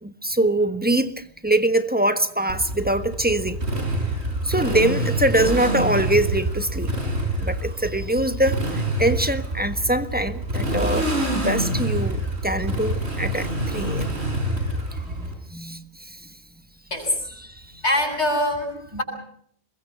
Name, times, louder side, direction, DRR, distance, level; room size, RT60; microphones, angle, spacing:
voice 1, 0.0-3.6 4.4-6.9 7.4-11.1 11.3-14.1 15.1-16.2 17.4-17.5, right 1 dB, 10° right, 1.3 m, -23 dB
Motorcycle, 2.5-15.3, right 1 dB, 75° right, 5.4 m, -26 dB
voice 2, 16.9-17.3 17.8-19.0, left 1 dB, 85° left, 8.5 m, -23 dB
27.5 x 22.5 x 5.9 m
omnidirectional pair, 1.1 m